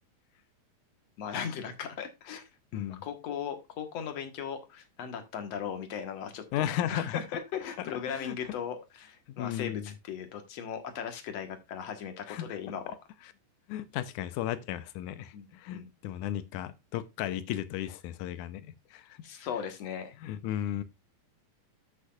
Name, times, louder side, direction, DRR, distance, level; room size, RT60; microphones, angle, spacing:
voice 1, 1.2-12.9 15.3-15.5 15.7-15.8 19.2-20.1, left 7 dB, 55° left, 2.3 m, -38 dB
voice 2, 6.5-7.2 7.9-8.4 9.4-9.9 12.3-12.5 13.7-19.2 20.2-20.8, left 11 dB, 75° left, 2.1 m, -35 dB
13.5 x 6.4 x 2.4 m
omnidirectional pair, 3.9 m